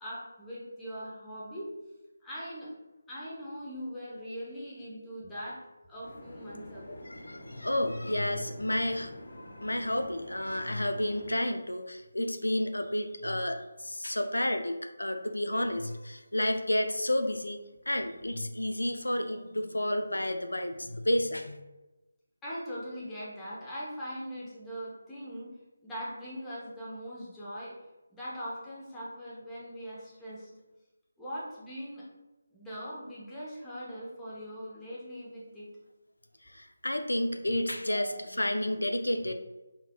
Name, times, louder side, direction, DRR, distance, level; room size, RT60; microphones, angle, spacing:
voice 1, 0.0-1.7 2.2-2.7 3.1-5.6 5.9-7.0 22.4-25.5 25.8-27.7 28.1-30.5 31.2-32.0 32.5-35.7 37.9-38.2, equal, 10° left, -8 dB, 0.7 m, -41 dB
sound 1, 6.0-11.4, left 1 dB, 65° left, 0.8 m, -47 dB
voice 2, 6.9-17.6 17.9-21.6 36.5-39.3, left 1 dB, 80° left, 7 dB, 0.3 m, -31 dB
3.8 x 2.9 x 2.2 m, 1.0 s
figure-of-eight pair, 155°, 0 cm